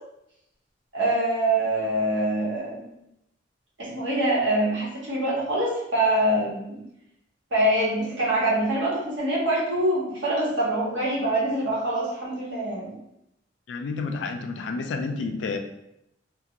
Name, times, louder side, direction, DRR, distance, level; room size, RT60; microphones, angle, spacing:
voice 1, 0.9-2.9 3.8-6.8 7.5-12.9, right 1 dB, 70° right, -5 dB, 0.9 m, -24 dB
voice 2, 13.7-15.6, left 4 dB, 70° left, 5 dB, 0.3 m, -30 dB
2.4 x 2.2 x 2.7 m, 0.81 s
head